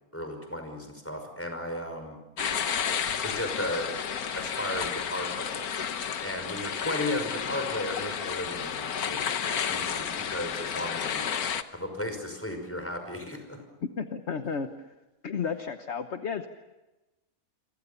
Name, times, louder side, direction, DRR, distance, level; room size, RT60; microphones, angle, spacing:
voice 1, 0.1-2.2 3.2-3.9 4.3-5.7 6.2-9.3 9.7-11.3 11.7-13.6, left 1 dB, 10° left, 5 dB, 5.6 m, -35 dB
sound 1, 2.4-11.6, left 7 dB, 90° left, 1.6 m, -31 dB
voice 2, 13.8-14.7 15.2-16.5, left 6 dB, 50° left, 8 dB, 1.3 m, -32 dB
29.0 x 24.5 x 7.0 m, 1.1 s
omnidirectional pair, 1.5 m